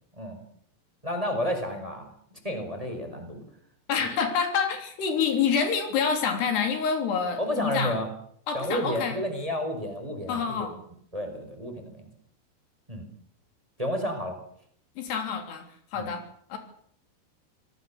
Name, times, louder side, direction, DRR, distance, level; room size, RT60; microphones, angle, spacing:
voice 1, 1.0-3.4 7.4-8.1 8.5-10.7 11.1-12.1 12.9-13.1 13.8-14.4 15.9-16.1, equal, 10° right, 5 dB, 5.0 m, -31 dB
voice 2, 3.9-8.0 8.5-9.2 10.3-10.8 15.0-15.7 15.9-16.2 16.5-16.6, left 6 dB, 85° left, 6 dB, 5.5 m, -27 dB
26.5 x 18.0 x 7.2 m, 0.66 s
omnidirectional pair, 4.6 m